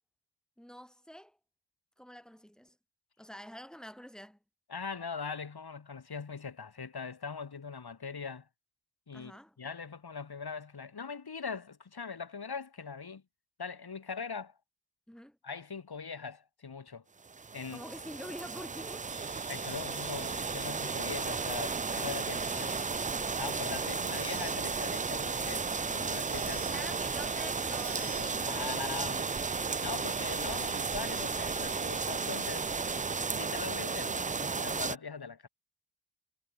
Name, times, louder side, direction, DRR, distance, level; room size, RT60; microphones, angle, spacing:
voice 1, 0.6-1.4 2.0-2.8 3.2-4.4 9.1-9.5 15.1-15.4 17.7-19.1 26.7-29.1, equal, ahead, 1.9 m, -47 dB
voice 2, 4.7-8.5 9.1-13.2 13.6-14.6 15.4-17.0 17.5-17.8 19.5-23.0 23.4-26.9 28.0-29.3 29.8-32.7 33.3-35.5, left 5 dB, 60° left, 2.9 m, -41 dB
sound 1, 17.2-35.0, right 4 dB, 20° right, 0.3 m, -34 dB
sound 2, 19.1-33.2, right 4 dB, 40° right, 2.2 m, -48 dB
wide cardioid pair, 65°, 42 cm